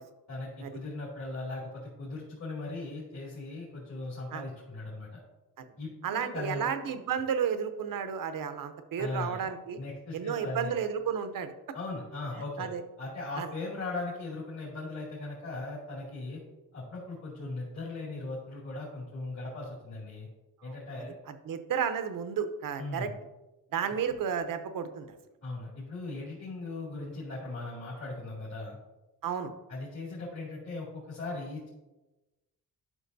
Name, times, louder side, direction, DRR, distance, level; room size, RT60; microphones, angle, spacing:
voice 1, 0.3-5.2 5.8-6.7 9.0-9.5 9.8-10.7 11.7-12.7 13.0-16.4 16.7-20.3 20.6-21.1 22.8-23.1 25.4-28.8 29.7-31.7, left 2 dB, 50° left, -6 dB, 2.5 m, -38 dB
voice 2, 6.0-9.8 10.1-11.5 12.6-12.8 13.4-13.5 21.4-23.1 23.7-25.1 29.2-29.5, right 7 dB, 70° right, 9 dB, 0.8 m, -32 dB
11.0 x 5.9 x 2.7 m, 1.1 s
cardioid pair, 110°, 34 cm